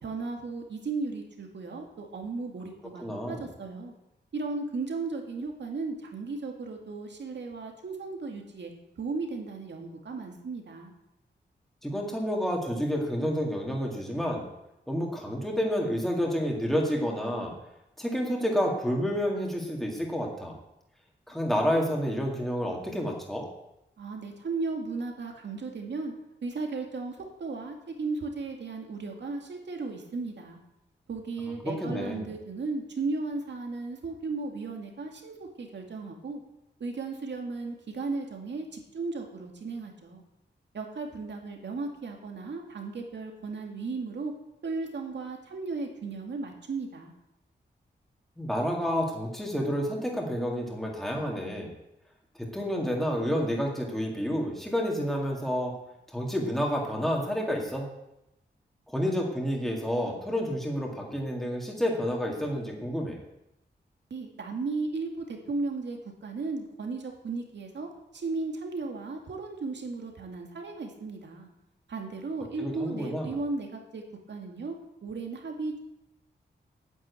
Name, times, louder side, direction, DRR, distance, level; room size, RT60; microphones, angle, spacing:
voice 1, 0.0-3.9 4.3-8.7 9.0-10.9 24.0-26.1 26.4-30.6 31.1-36.4 36.8-40.2 40.7-44.3 44.6-47.1 64.1-71.5 71.9-74.0 74.3-74.8 75.0-75.8, right 3 dB, 70° right, 3 dB, 2.3 m, -35 dB
voice 2, 3.0-3.4 11.8-14.5 14.9-17.5 18.0-20.5 21.3-23.5 31.6-32.3 48.4-51.7 52.4-55.7 56.1-57.9 58.9-63.2 72.6-73.3, equal, ahead, -1 dB, 2.1 m, -29 dB
9.6 x 9.4 x 8.3 m, 0.88 s
wide cardioid pair, 175°, 19 cm